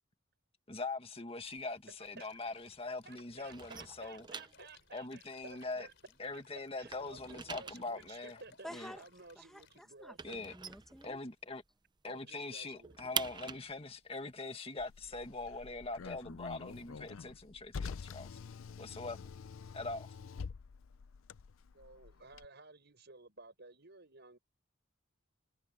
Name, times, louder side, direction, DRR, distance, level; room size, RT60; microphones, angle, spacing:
voice 1, 0.7-4.3 4.9-5.9 6.2-8.4 8.7-9.0 10.2-10.5 11.0-11.6 12.0-18.4 18.8-19.2 19.7-20.1, left 3 dB, 30° left, 1.8 m, -42 dB
sound 1, 1.4-2.9 3.1-6.3 6.6-11.7 12.0-12.1 12.4-16.1, right 6 dB, 20° right, 0.6 m, -45 dB
voice 2, 1.9-2.3 3.0-5.9 6.3-6.4 6.8-10.4 12.0-13.1 21.7-24.4, right 3 dB, 55° right, 6.9 m, -55 dB
sound 2, 2.0-9.8, left 6 dB, 60° left, 4.8 m, -64 dB
voice 3, 8.6-9.0 9.4-11.2, equal, ahead, 1.7 m, -50 dB
Car, 14.8-22.5, left 5 dB, 80° left, 0.5 m, -47 dB
head